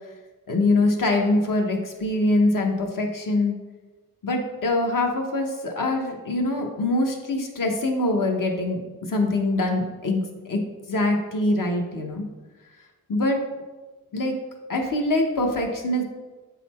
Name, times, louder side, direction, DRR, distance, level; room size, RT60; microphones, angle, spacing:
voice 1, 0.5-3.6 4.2-8.8 9.1-12.2 13.1-13.4 14.1-14.3 14.7-16.0, left 2 dB, 65° left, 2 dB, 1.1 m, -24 dB
8.3 x 4.2 x 4.2 m, 1.3 s
wide cardioid pair, 100°, 34 cm